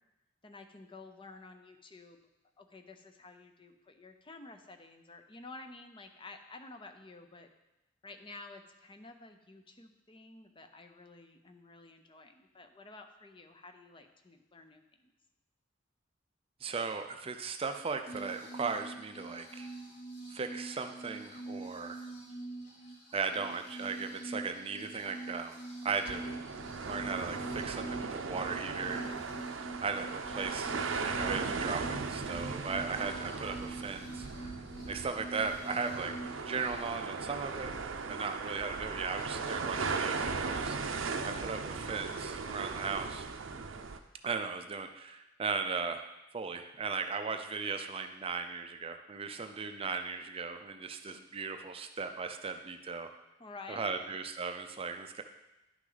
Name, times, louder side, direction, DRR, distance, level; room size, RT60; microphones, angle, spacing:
voice 1, 0.4-2.2 2.6-7.5 8.0-15.1 53.4-54.2, left 3 dB, 25° left, 7 dB, 0.6 m, -51 dB
voice 2, 16.6-19.7 20.3-22.1 23.1-26.2 26.8-29.0 29.8-34.3 34.9-36.1 36.5-37.7 38.1-43.3 44.2-53.1 53.7-55.2, right 5 dB, 30° right, 7 dB, 0.4 m, -37 dB
sound 1, 18.1-36.9, right 2 dB, 65° left, 2.3 m, -45 dB
sound 2, 26.1-44.0, right 4 dB, 80° right, 0.6 m, -38 dB
10.5 x 6.1 x 4.0 m, 0.95 s
head